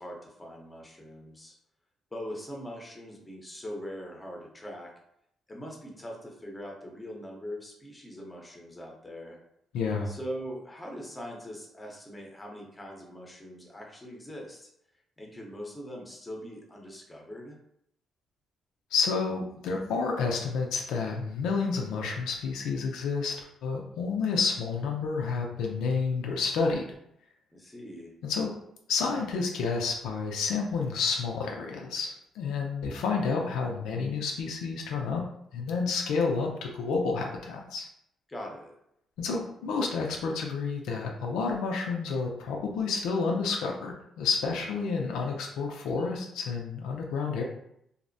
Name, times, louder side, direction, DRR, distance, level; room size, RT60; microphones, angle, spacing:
voice 1, 0.0-1.5 2.1-4.9 5.5-9.4 10.1-14.7 15.2-17.6 27.5-28.1 38.3-38.7, equal, 15° left, 0 dB, 0.7 m, -41 dB
voice 2, 9.7-10.1 18.9-26.9 28.3-28.5 28.9-35.2 35.5-37.9 39.2-47.4, left 4 dB, 90° left, 1 dB, 0.4 m, -30 dB
2.6 x 2.0 x 2.5 m, 0.74 s
cardioid pair, 90°, 0 cm